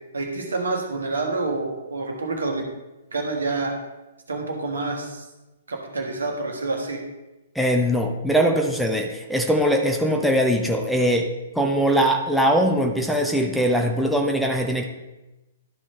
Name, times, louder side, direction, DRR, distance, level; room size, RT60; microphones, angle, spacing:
voice 1, 0.1-2.6 3.1-3.7 4.3-5.2 5.7-7.0, right 3 dB, 65° right, 2 dB, 1.5 m, -27 dB
voice 2, 7.5-11.3 11.5-14.8, equal, ahead, 2 dB, 0.7 m, -21 dB
12.0 x 5.3 x 3.4 m, 1.0 s
figure-of-eight pair, 120°, 0 cm